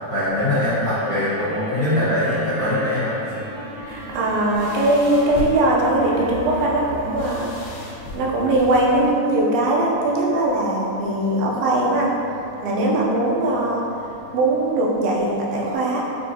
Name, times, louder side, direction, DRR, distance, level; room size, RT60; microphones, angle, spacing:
voice 1, 0.1-3.4, left 1 dB, 60° left, -15 dB, 1.5 m, -22 dB
sound 1, 0.7-7.5, equal, 50° right, 2.2 m, -36 dB
sound 2, 1.0-15.7, equal, 75° right, 1.3 m, -43 dB
voice 2, 3.8-7.9 8.1-12.1 12.6-13.8 14.3-16.0, right 1 dB, 90° right, -4 dB, 2.4 m, -20 dB
sound 3, 3.9-9.1, left 2 dB, 85° left, 2.2 m, -36 dB
6.0 x 2.6 x 2.7 m, 2.9 s
omnidirectional pair, 3.9 m